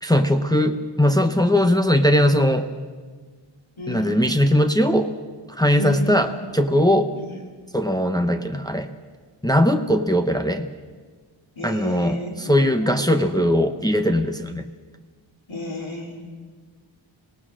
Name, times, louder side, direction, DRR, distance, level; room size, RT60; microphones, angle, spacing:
voice 1, 0.0-2.7 3.9-5.1 5.5-7.1 7.7-8.9 9.4-10.7 11.6-14.7, equal, 10° left, 6 dB, 0.9 m, -20 dB
voice 2, 3.8-4.2 5.8-6.2 7.1-7.3 11.6-13.1 15.5-16.3, left 1 dB, 75° left, 1 dB, 3.5 m, -32 dB
25.5 x 18.0 x 6.3 m, 1.5 s
wide cardioid pair, 60°, 48 cm